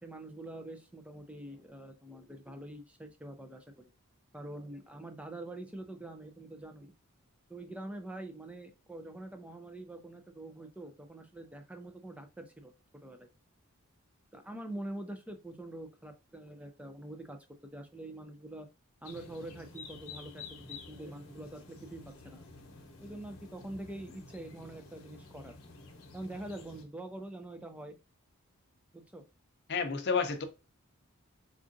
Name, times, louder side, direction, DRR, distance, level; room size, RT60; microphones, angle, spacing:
voice 1, 0.0-3.9 4.3-6.9 7.5-12.7 13.0-13.3 14.3-17.4 17.6-18.7 19.0-22.4 23.0-25.6 26.1-28.0 28.9-29.2, right 1 dB, 5° right, 0.4 m, -45 dB
sound 1, 19.0-26.8, left 4 dB, 80° left, 0.9 m, -50 dB
voice 2, 29.7-30.5, left 5 dB, 50° left, 0.6 m, -30 dB
4.6 x 2.4 x 2.5 m
head